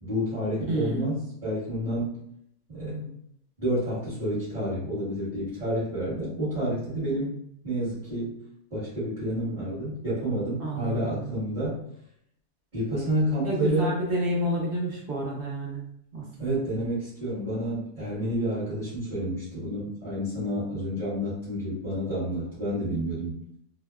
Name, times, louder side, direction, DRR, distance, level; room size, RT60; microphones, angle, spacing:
voice 1, 0.0-2.2 2.7-3.1 3.6-7.4 7.6-8.3 8.7-11.8 12.7-13.9 16.4-23.4, equal, 35° right, -12 dB, 1.0 m, -29 dB
voice 2, 0.7-1.2 10.6-11.3 13.4-15.8 16.1-16.6, right 1 dB, 65° right, -3 dB, 0.5 m, -30 dB
2.7 x 2.1 x 2.2 m, 0.71 s
omnidirectional pair, 1.7 m